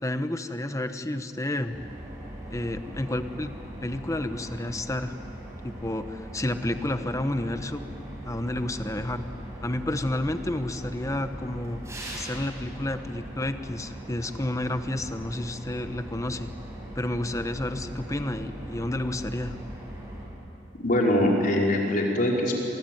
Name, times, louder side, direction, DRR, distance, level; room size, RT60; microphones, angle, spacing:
voice 1, 0.0-1.8 2.5-3.5 3.8-5.2 5.6-7.8 8.2-9.2 9.6-11.8 12.1-16.5 16.9-19.5, left 1 dB, 20° left, 9 dB, 1.2 m, -30 dB
sound 1, 1.7-20.2, right 1 dB, 15° right, 7.0 m, -40 dB
voice 2, 20.8-22.6, left 1 dB, 50° left, -1 dB, 5.1 m, -23 dB
27.0 x 23.0 x 9.4 m, 3.0 s
head